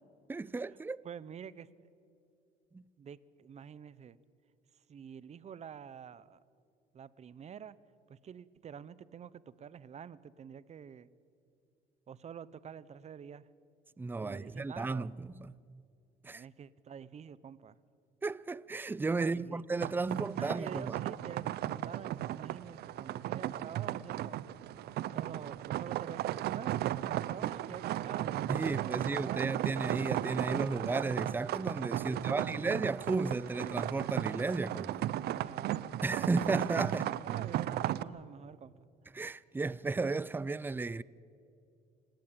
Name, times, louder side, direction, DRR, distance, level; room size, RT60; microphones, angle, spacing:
voice 1, 0.3-1.0 2.7-2.8 14.0-15.5 16.2-16.4 18.2-21.0 28.5-35.1 36.0-37.1 39.1-41.0, right 3 dB, 10° right, 0.5 m, -34 dB
voice 2, 1.0-1.7 3.0-4.2 4.9-6.4 6.9-7.8 8.1-11.1 12.1-13.5 14.2-15.1 16.2-17.7 19.2-19.6 20.4-24.4 25.1-29.4 32.0-32.6 35.3-35.8 36.8-38.7, right 8 dB, 40° right, 0.9 m, -47 dB
sound 1, 19.8-38.0, right 13 dB, 70° right, 0.7 m, -35 dB
27.5 x 17.0 x 9.0 m
cardioid pair, 110°, 17 cm